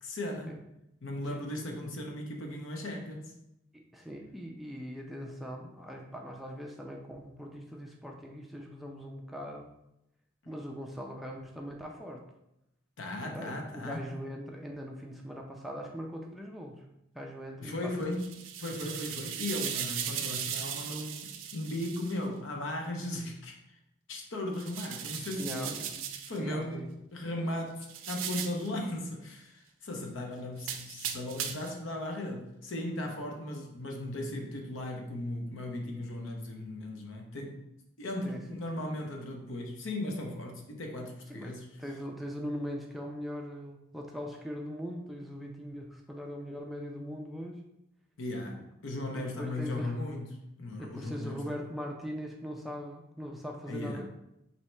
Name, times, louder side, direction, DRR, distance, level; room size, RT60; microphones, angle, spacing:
voice 1, 0.0-0.5 1.0-3.3 13.0-14.0 17.6-18.3 18.6-23.8 24.1-25.8 26.3-37.6 38.0-41.7 48.2-50.3 50.6-51.5 53.7-54.1, left 1 dB, 80° left, 1 dB, 0.7 m, -37 dB
voice 2, 3.7-9.7 10.5-12.2 13.2-16.8 17.1-18.2 25.4-26.0 26.4-26.9 38.2-38.4 41.3-41.5 41.8-47.6 49.1-50.0 50.8-54.1, equal, ahead, 0 dB, 0.3 m, -41 dB
sound 1, 18.0-22.2 24.5-26.4 27.8-28.7 30.6-31.8, right 8 dB, 85° right, 0.4 m, -38 dB
3.2 x 2.7 x 4.4 m, 0.84 s
head